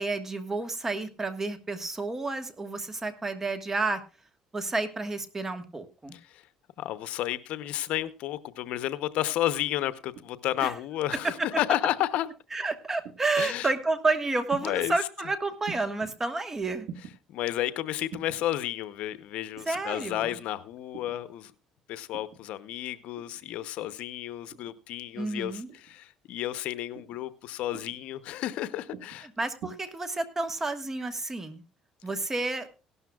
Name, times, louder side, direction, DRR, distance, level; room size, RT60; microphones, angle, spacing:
voice 1, 0.0-4.0 4.5-6.1 10.6-10.7 11.1-11.3 12.5-16.9 19.7-20.3 25.2-25.7 29.4-31.6 32.0-32.7, right 3 dB, 20° right, 9 dB, 1.5 m, -30 dB
voice 2, 6.1-6.4 6.8-12.3 13.4-13.7 14.6-14.9 17.3-21.5 21.9-29.3, left 13 dB, 75° left, 14 dB, 0.8 m, -32 dB
sound 1, 10.2-10.6 11.6-12.0 13.0-13.5 14.5-14.9 15.7-16.1 16.8-17.2 18.1-18.4 19.6-19.9 20.9-21.2 22.1-22.4 23.2-23.5 24.5-24.8 25.7-26.0 26.9-27.2 27.7-28.0 28.9-29.2 29.6-29.7, right 7 dB, 75° right, 1.7 m, -44 dB
17.0 x 12.5 x 2.3 m, 0.32 s
cardioid pair, 120°, 2 cm